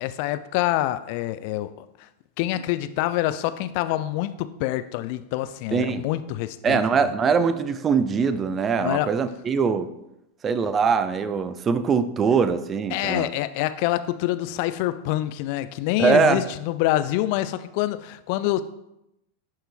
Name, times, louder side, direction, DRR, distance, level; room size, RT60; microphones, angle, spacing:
voice 1, 0.0-1.9 2.4-7.1 8.8-9.1 12.9-18.6, left 15 dB, 45° left, 13 dB, 0.3 m, -26 dB
voice 2, 5.7-6.1 6.6-9.9 10.4-13.3 16.0-16.4, right 5 dB, 25° right, 12 dB, 0.4 m, -22 dB
11.5 x 4.4 x 2.2 m, 0.87 s
figure-of-eight pair, 90°, 0 cm